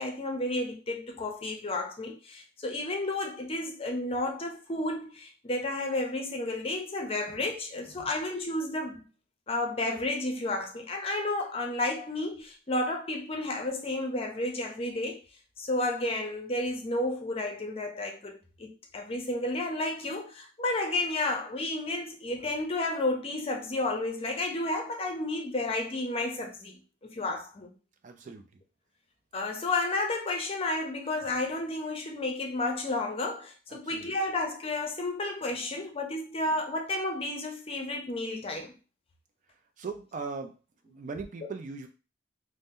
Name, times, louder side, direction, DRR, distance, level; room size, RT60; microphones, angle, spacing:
voice 1, 0.0-9.1 9.5-15.2 15.6-27.7 29.3-38.7, left 2 dB, 30° left, 0.6 m, -32 dB
voice 2, 28.0-28.5 33.7-34.1 39.8-40.6 40.8-41.9, right 4 dB, 45° right, 0.4 m, -39 dB
2.6 x 2.1 x 3.5 m
head